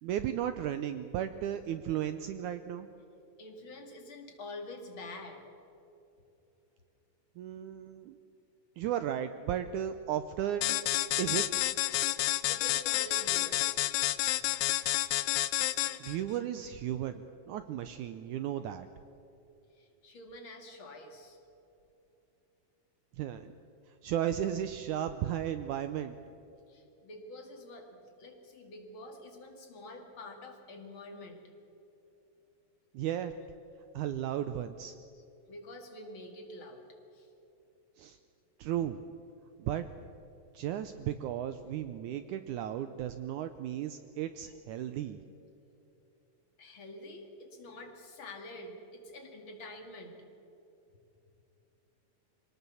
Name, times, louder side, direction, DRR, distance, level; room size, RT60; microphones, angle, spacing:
voice 1, 0.0-2.9 7.4-8.2 8.8-10.8 11.2-11.7 15.2-15.4 16.0-18.9 23.2-23.5 24.0-26.2 32.9-33.3 33.9-34.9 38.0-38.2 38.6-39.0 39.6-39.9 40.5-45.2, right 10 dB, 85° right, 10 dB, 1.8 m, -35 dB
voice 2, 3.4-5.4 12.4-13.7 14.3-14.7 19.7-21.4 26.7-31.4 35.5-36.8 37.1-37.3 46.6-50.1, left 2 dB, 40° left, 3 dB, 2.4 m, -47 dB
sound 1, 10.6-16.2, left 16 dB, 90° left, 1.7 m, -30 dB
23.0 x 18.5 x 7.1 m, 2.9 s
omnidirectional pair, 4.1 m